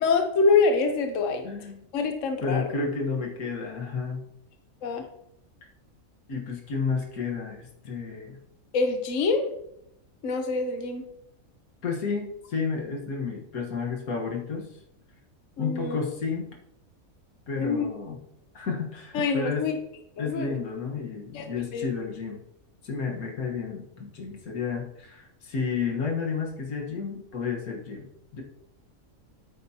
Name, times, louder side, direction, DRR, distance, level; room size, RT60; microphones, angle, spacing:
voice 1, 0.0-1.4 1.9-2.6 4.8-5.0 8.7-9.5 10.2-11.0 15.6-16.0 17.5-17.9 19.1-19.8 20.2-20.5 21.3-21.9, left 4 dB, 65° left, 5 dB, 1.2 m, -25 dB
voice 2, 1.4-1.8 2.4-4.3 6.3-8.4 11.8-14.7 15.6-16.5 17.5-18.2 18.5-19.7 20.2-22.4 22.8-28.4, left 5 dB, 90° left, 1 dB, 2.0 m, -31 dB
8.6 x 8.5 x 2.9 m, 0.77 s
omnidirectional pair, 1.5 m